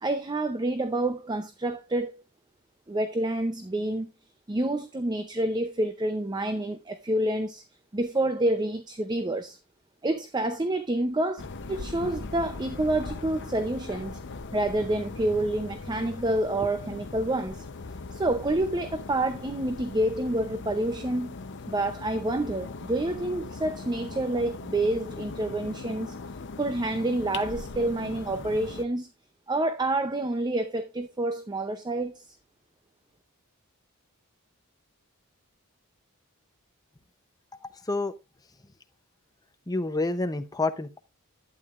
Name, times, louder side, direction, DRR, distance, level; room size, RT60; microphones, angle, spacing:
voice 1, 0.0-2.1 2.9-4.1 4.5-7.6 7.9-9.6 10.0-11.4 11.7-14.2 14.5-17.7 18.1-21.4 21.7-26.1 26.6-29.1 29.5-32.3, right 1 dB, 20° right, 0.6 m, -28 dB
sound 1, 11.4-28.9, left 3 dB, 55° left, 0.7 m, -40 dB
voice 2, 39.7-41.0, left 2 dB, 15° left, 0.7 m, -28 dB
11.5 x 8.8 x 2.5 m
head